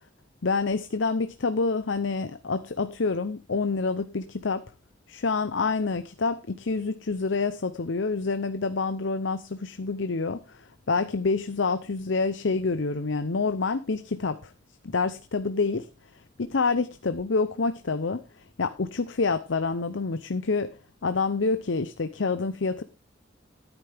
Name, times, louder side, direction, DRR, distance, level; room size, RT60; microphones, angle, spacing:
voice 1, 0.4-4.6 5.1-14.5 14.8-15.9 16.4-18.2 18.6-20.7 21.0-22.8, left 4 dB, 85° left, 10 dB, 0.7 m, -27 dB
13.5 x 9.1 x 3.5 m, 0.29 s
head